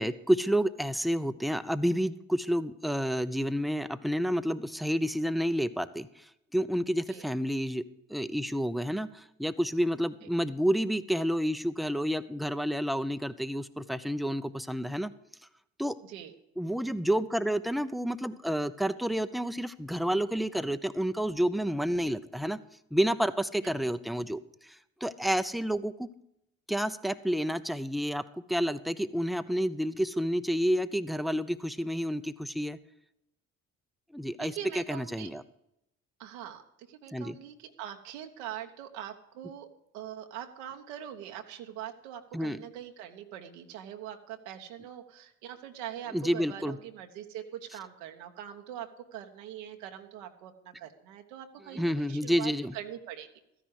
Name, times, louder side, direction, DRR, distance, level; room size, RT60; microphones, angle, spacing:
voice 1, 0.0-6.1 6.5-7.8 8.1-15.1 15.8-16.0 16.6-22.6 22.9-24.4 25.0-26.1 26.7-32.8 34.1-35.4 37.1-37.4 42.3-42.6 46.1-46.8 51.7-52.7, equal, ahead, 13 dB, 0.7 m, -29 dB
voice 2, 16.0-16.3 23.6-23.9 34.4-35.3 36.2-36.6 36.9-39.7 39.9-53.3, right 10 dB, 80° right, 5 dB, 1.2 m, -43 dB
13.5 x 10.0 x 4.8 m, 0.81 s
hypercardioid pair, 50°, 38 cm